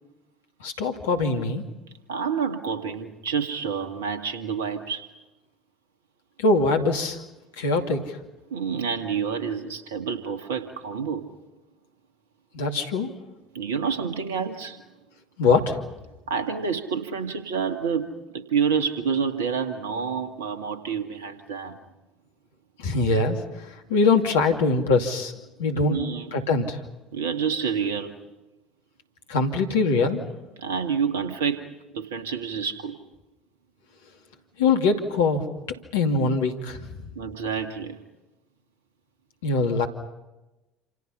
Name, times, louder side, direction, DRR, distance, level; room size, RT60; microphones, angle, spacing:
voice 1, 0.6-1.6 6.4-7.2 7.6-8.2 12.5-13.1 15.4-15.8 22.8-25.3 25.6-26.0 26.3-26.8 29.3-30.2 34.6-35.5 35.9-36.9 39.4-39.9, left 3 dB, 70° left, 3 dB, 2.5 m, -22 dB
voice 2, 2.1-5.1 8.5-11.3 13.5-14.8 16.3-21.8 25.9-26.4 27.1-28.2 30.6-33.0 37.2-38.0, right 6 dB, 70° right, 8 dB, 2.1 m, -28 dB
28.0 x 28.0 x 5.7 m, 1.0 s
figure-of-eight pair, 60°, 0 cm